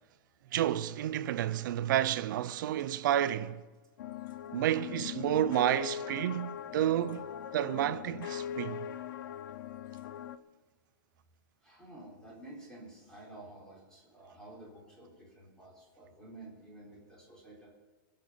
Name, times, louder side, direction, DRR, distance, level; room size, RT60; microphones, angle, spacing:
voice 1, 0.5-3.6 4.5-8.9, right 11 dB, 65° right, 0.7 m, -30 dB
sound 1, 4.0-10.4, left 10 dB, 70° left, 0.7 m, -41 dB
voice 2, 11.6-17.7, right 2 dB, 5° left, 4.3 m, -51 dB
22.5 x 7.6 x 5.8 m
supercardioid pair, 170°, 11 cm